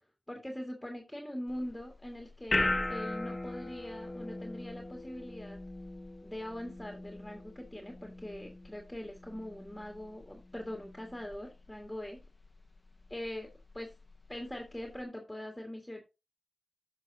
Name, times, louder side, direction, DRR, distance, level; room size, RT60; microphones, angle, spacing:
voice 1, 0.3-5.6 6.2-12.2 13.1-13.9 14.3-16.0, left 1 dB, 15° left, 1.9 m, -42 dB
sound 1, 1.5-15.0, left 2 dB, 35° left, 1.1 m, -40 dB
14.0 x 5.6 x 2.8 m
cardioid pair, 40°, 0 cm